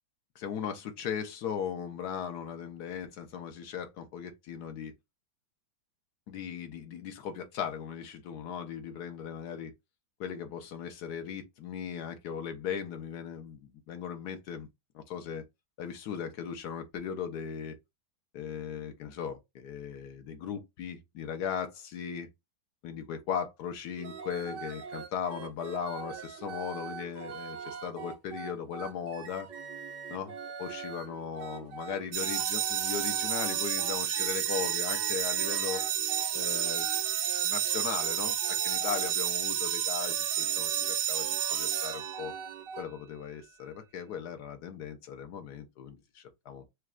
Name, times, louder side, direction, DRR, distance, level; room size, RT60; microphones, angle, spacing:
voice 1, 0.4-4.9 6.3-9.7 10.2-14.7 14.9-15.4 15.8-17.8 18.3-22.3 22.8-29.5 30.1-30.3 30.6-35.8 36.3-36.9 37.4-42.3 42.8-46.7, left 7 dB, 70° left, 1.3 m, -38 dB
sound 1, 24.0-39.1 39.6-42.8, right 6 dB, 85° right, 1.4 m, -42 dB
sound 2, 32.1-42.5, right 10 dB, 65° right, 1.0 m, -30 dB
6.2 x 2.3 x 2.4 m
omnidirectional pair, 1.8 m